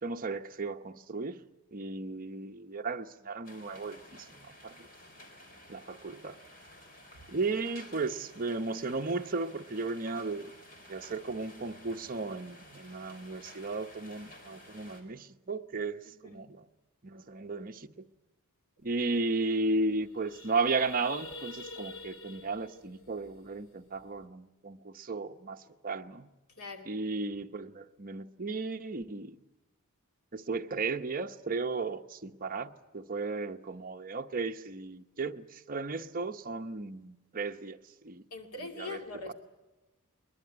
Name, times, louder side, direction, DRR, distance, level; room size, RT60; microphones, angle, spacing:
voice 1, 0.0-1.4 1.7-4.0 4.4-4.7 5.7-6.4 7.3-10.5 10.9-16.6 17.0-17.9 18.8-25.6 25.8-26.3 26.9-29.3 30.3-37.8 38.0-38.2 38.8-39.0, right 3 dB, 40° right, 0.9 m, -35 dB
sound 1, 3.4-15.0, left 1 dB, 40° left, 4.3 m, -53 dB
sound 2, 18.9-19.0 19.3-19.5 19.8-24.2, left 3 dB, 65° left, 2.6 m, -47 dB
voice 2, 26.5-26.9 38.3-39.3, left 3 dB, 80° left, 2.4 m, -42 dB
21.5 x 21.5 x 9.9 m
head